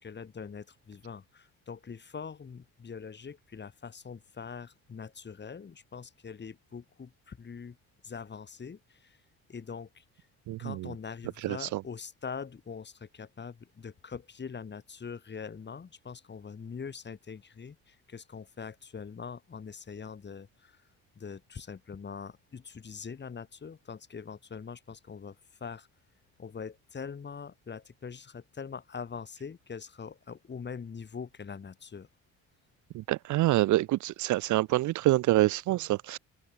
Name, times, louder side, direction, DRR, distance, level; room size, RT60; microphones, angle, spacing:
voice 1, 0.0-7.8 8.0-9.2 9.5-10.0 10.6-20.8 21.2-25.9 26.4-32.1, left 6 dB, 35° left, 4.6 m, -43 dB
voice 2, 10.5-10.9 11.4-11.8 32.9-36.2, right 16 dB, 70° right, 1.1 m, -26 dB
supercardioid pair, 85°, 31 cm